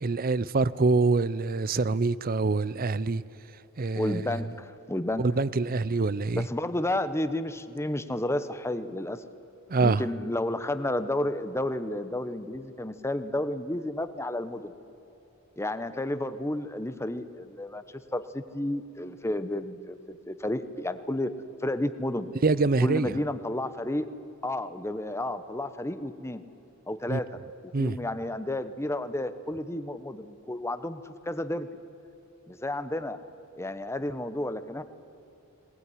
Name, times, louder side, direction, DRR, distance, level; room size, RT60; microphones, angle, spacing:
voice 1, 0.0-3.2 3.8-4.2 5.2-6.5 9.7-10.0 22.4-23.1 27.1-27.2 27.7-28.0, right 3 dB, 45° right, 0.6 m, -25 dB
voice 2, 4.0-5.2 6.3-9.2 9.8-14.7 15.6-17.8 18.1-21.3 21.6-22.3 22.8-24.1 24.4-26.4 26.9-27.3 27.8-31.7 32.5-33.2 33.6-34.8, left 1 dB, 15° left, 1.0 m, -31 dB
21.0 x 19.5 x 9.9 m
head